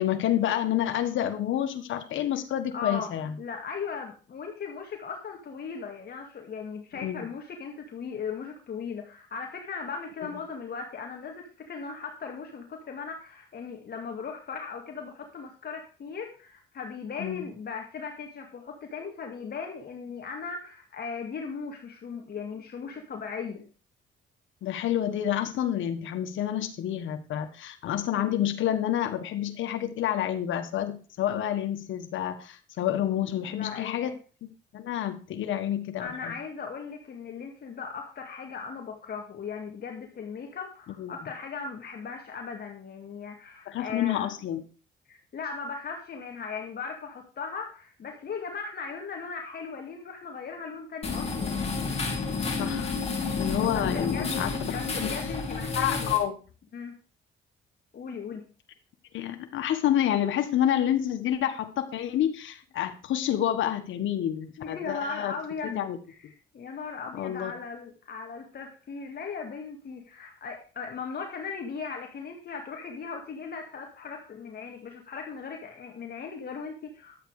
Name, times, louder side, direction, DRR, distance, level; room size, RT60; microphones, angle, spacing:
voice 1, 0.0-3.4 6.9-7.3 17.2-17.4 24.6-34.1 34.7-36.3 41.0-41.1 43.7-44.6 52.6-52.9 53.4-54.8 55.0-55.1 55.7-56.3 59.1-65.3 65.7-66.0 67.1-67.5, left 11 dB, 75° left, 7 dB, 1.5 m, -28 dB
voice 2, 2.7-3.1 3.4-23.6 33.5-34.1 36.0-44.3 45.1-51.6 53.7-54.3 54.7-56.1 56.7-56.9 57.9-58.4 64.6-65.8 66.2-77.2, left 5 dB, 50° left, 2 dB, 2.2 m, -38 dB
sound 1, 51.0-56.2, left 4 dB, 30° left, 3.6 m, -30 dB
12.0 x 8.3 x 4.9 m, 0.37 s
cardioid pair, 90°, 20 cm